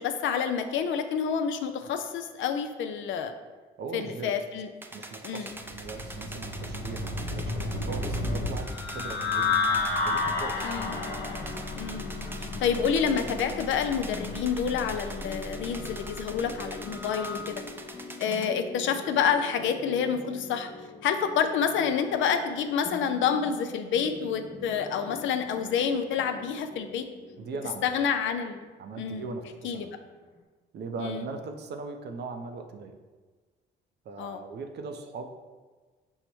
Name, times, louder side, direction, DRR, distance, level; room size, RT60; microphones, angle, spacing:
voice 1, 0.0-3.3 3.9-4.7 5.2-5.5 10.6-11.0 11.8-12.2 12.6-17.6 18.2-20.7 21.0-27.0 27.8-28.7 29.0-29.2 29.6-29.9 31.0-31.2 34.2-34.4, left 7 dB, 75° left, 7 dB, 0.4 m, -28 dB
voice 2, 3.8-4.4 4.9-9.6 10.0-10.7 27.4-27.9 28.8-30.0 30.7-33.0 34.0-35.3, right 4 dB, 60° right, 6 dB, 0.5 m, -39 dB
sound 1, 4.8-18.5, right 2 dB, 10° right, 0.3 m, -44 dB
sound 2, 5.6-17.5, left 3 dB, 60° left, 0.8 m, -32 dB
sound 3, 10.8-30.4, left 3 dB, 30° left, 0.8 m, -44 dB
5.4 x 2.1 x 4.5 m, 1.4 s
cardioid pair, 90°, 20 cm